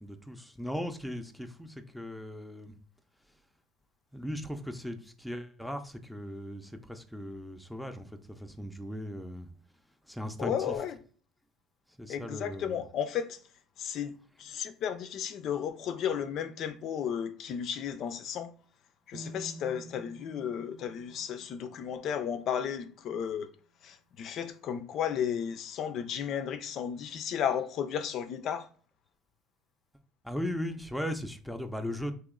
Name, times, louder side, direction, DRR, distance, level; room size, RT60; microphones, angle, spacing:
voice 1, 0.0-2.8 4.1-9.5 10.0-10.8 12.0-12.8 30.2-32.1, equal, ahead, 0.5 m, -38 dB
voice 2, 10.4-11.0 12.1-13.4 13.8-14.1 14.4-18.5 19.1-23.5 23.8-28.7, left 8 dB, 55° left, 0.4 m, -34 dB
sound 1, 19.1-23.1, equal, 50° right, 0.7 m, -49 dB
3.0 x 2.8 x 3.6 m
supercardioid pair, 100°, 0 cm